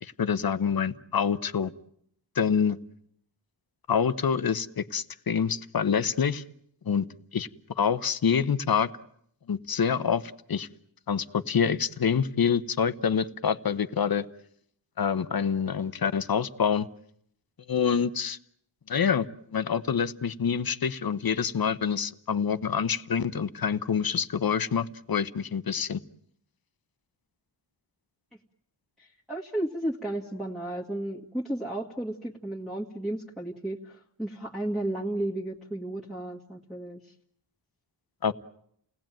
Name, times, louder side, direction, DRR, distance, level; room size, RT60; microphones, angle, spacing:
voice 1, 0.0-1.7 2.4-2.8 3.9-6.4 6.9-7.1 7.3-7.5 7.8-8.9 9.5-10.2 10.5-10.7 11.1-14.2 15.0-16.9 17.7-18.4 18.9-19.3 19.5-26.0 38.2-38.3, left 7 dB, 50° left, 13 dB, 1.0 m, -26 dB
voice 2, 29.0-37.0, right 1 dB, ahead, -6 dB, 1.9 m, -33 dB
29.5 x 18.0 x 9.1 m, 0.72 s
wide cardioid pair, 120°, 45 cm